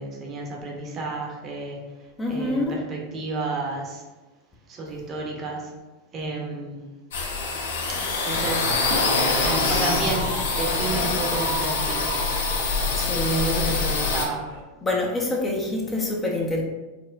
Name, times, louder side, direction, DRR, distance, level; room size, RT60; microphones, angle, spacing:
voice 1, 0.0-1.8 2.3-4.0 4.7-5.7 6.1-6.9 7.9-8.7 9.4-12.2 13.4-14.5, right 3 dB, 35° right, -1 dB, 0.8 m, -31 dB
voice 2, 2.2-2.7 13.0-13.8 14.8-16.6, left 1 dB, 20° left, -2 dB, 0.6 m, -26 dB
sound 1, 7.1-14.3, left 4 dB, 80° left, 0.6 m, -25 dB
sound 2, 8.2-14.6, right 2 dB, 85° right, 0.7 m, -33 dB
4.3 x 2.1 x 2.5 m, 1.2 s
hypercardioid pair, 110°, 0 cm